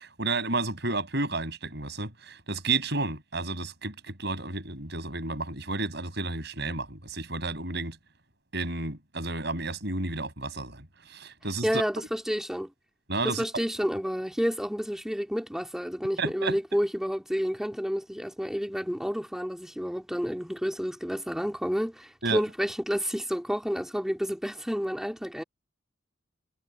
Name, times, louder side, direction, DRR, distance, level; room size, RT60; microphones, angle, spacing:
voice 1, 0.0-8.0 8.5-11.8 13.1-13.6 16.2-16.6 22.2-22.4, right 3 dB, 55° right, 6.3 m, -31 dB
voice 2, 11.6-12.7 13.2-25.4, equal, ahead, 3.3 m, -30 dB
head